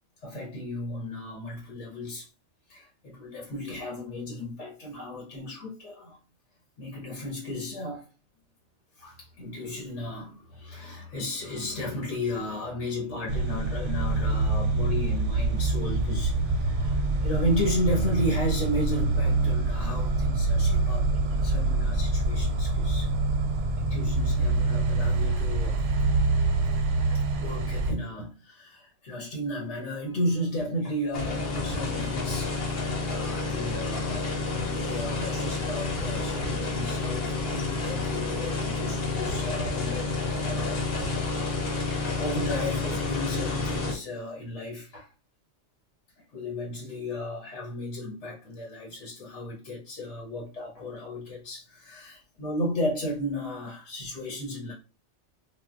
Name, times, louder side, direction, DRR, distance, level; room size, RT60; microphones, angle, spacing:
voice 1, 0.2-2.3 2.7-6.2 6.8-8.1 9.0-23.1 23.8-25.9 27.1-34.3 34.6-41.1 42.0-45.1 46.3-54.7, left 1 dB, 90° left, 1.3 m, -34 dB
sound 1, 13.3-27.9, right 2 dB, 90° right, 0.9 m, -25 dB
sound 2, 31.1-43.9, left 3 dB, 60° left, 1.0 m, -29 dB
3.7 x 2.2 x 2.4 m
omnidirectional pair, 1.2 m